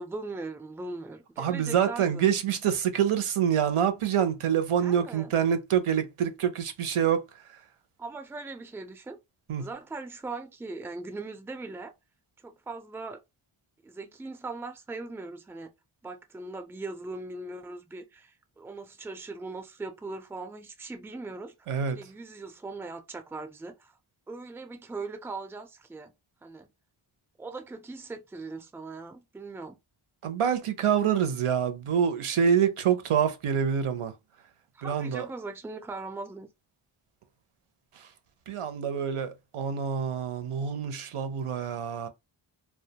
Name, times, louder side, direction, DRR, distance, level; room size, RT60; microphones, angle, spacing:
voice 1, 0.0-2.3 4.8-5.3 8.0-9.2 9.6-11.9 12.4-13.2 13.8-15.7 16.0-21.5 21.9-23.9 24.3-26.1 26.4-26.7 27.4-29.8 34.7-36.5, right 3 dB, 5° right, 0.3 m, -40 dB
voice 2, 1.4-7.2 9.5-9.6 21.7-22.0 30.2-34.1 34.8-35.2 38.5-42.1, right 8 dB, 85° right, 0.6 m, -26 dB
2.2 x 2.2 x 2.7 m
wide cardioid pair, 55°, 50 cm